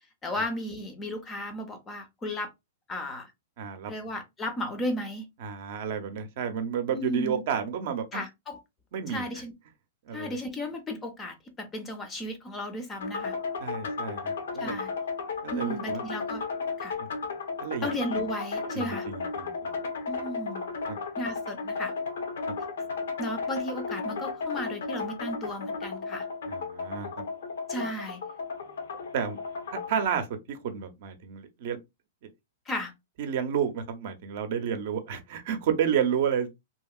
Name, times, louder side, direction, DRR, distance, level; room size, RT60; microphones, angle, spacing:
voice 1, 0.2-2.5 2.9-3.3 3.9-5.3 6.9-7.4 8.1-8.6 9.1-9.5 10.1-13.4 14.6-14.9 15.5-16.4 16.8-16.9 17.8-19.1 20.1-20.7 21.2-21.9 23.2-26.3 27.7-28.2 32.7-32.9, left 1 dB, 15° left, 0.5 m, -34 dB
voice 2, 3.6-3.9 5.4-8.2 8.9-9.2 10.1-10.4 13.6-14.8 15.4-16.0 17.0-17.1 17.6-17.9 18.7-19.5 26.5-27.1 27.8-27.9 29.1-29.4 29.7-31.8 33.2-36.5, right 8 dB, 50° right, 0.6 m, -31 dB
sound 1, 13.0-30.0, left 4 dB, 85° left, 0.9 m, -34 dB
2.8 x 2.7 x 2.3 m
supercardioid pair, 160°, 0 cm